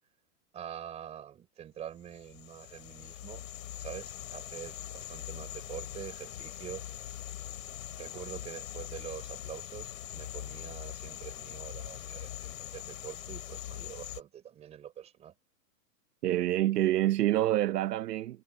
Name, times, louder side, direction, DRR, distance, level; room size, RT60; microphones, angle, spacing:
voice 1, 0.5-3.4 3.8-6.8 8.0-15.3, right 10 dB, 15° right, 4.9 m, -45 dB
sound 1, 2.0-14.2, left 13 dB, 55° left, 5.5 m, -42 dB
voice 2, 16.2-18.4, right 14 dB, 80° right, 0.9 m, -27 dB
supercardioid pair, 180°, 47 cm